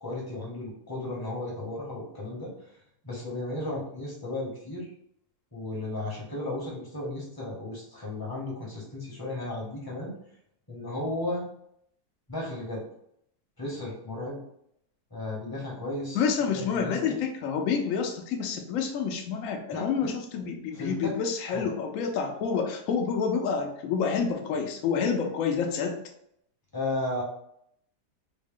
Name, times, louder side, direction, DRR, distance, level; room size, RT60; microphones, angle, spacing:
voice 1, 0.0-2.5 3.0-4.9 5.5-10.1 10.7-11.4 12.3-12.8 13.6-14.4 15.1-16.2 16.5-17.2 19.7-20.1 20.7-21.1 21.5-21.7 26.7-27.2, left 2 dB, 20° left, -4 dB, 0.7 m, -34 dB
voice 2, 16.1-25.9, left 6 dB, 70° left, 3 dB, 0.8 m, -28 dB
4.0 x 2.1 x 3.5 m, 0.73 s
omnidirectional pair, 1.8 m